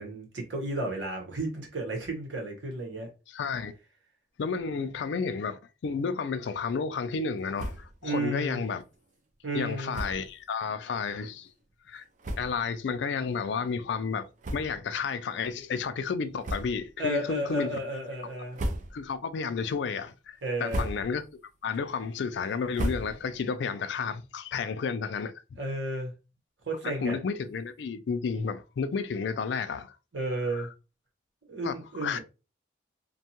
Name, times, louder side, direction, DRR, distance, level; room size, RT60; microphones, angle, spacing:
voice 1, 0.0-3.1 8.0-8.6 9.4-10.0 17.0-18.6 20.4-20.9 25.6-26.1 26.7-27.2 30.1-30.7 31.4-32.2, right 1 dB, 90° right, 1.0 m, -32 dB
voice 2, 3.3-3.7 4.4-8.8 9.5-11.5 11.9-12.0 12.4-17.8 18.9-21.2 21.6-25.6 26.8-29.9 30.5-30.7 31.6-32.2, left 5 dB, 70° left, 0.3 m, -32 dB
sound 1, 7.5-8.0 8.4-8.5 8.7-8.9 9.9-10.3 11.1-11.2 11.9-12.0 12.2-12.7 13.3-13.4 14.4-15.0 15.4-15.6 16.4-17.0 17.4-17.9 18.3-19.2 19.6-20.0 20.5-21.3 21.7-23.5, right 1 dB, 40° right, 0.4 m, -36 dB
2.6 x 2.2 x 2.8 m
head